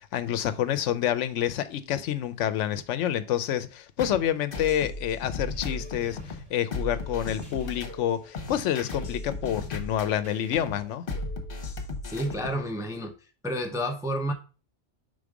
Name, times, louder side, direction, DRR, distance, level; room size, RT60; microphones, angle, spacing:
voice 1, 0.0-11.0, left 10 dB, 75° left, 0.9 m, -28 dB
sound 1, 4.0-12.7, left 2 dB, 50° left, 1.2 m, -36 dB
sound 2, 5.3-11.0, left 2 dB, 65° right, 2.1 m, -49 dB
voice 2, 12.0-13.1 13.4-14.3, equal, 5° right, 0.4 m, -30 dB
5.2 x 3.8 x 4.8 m
omnidirectional pair, 1.3 m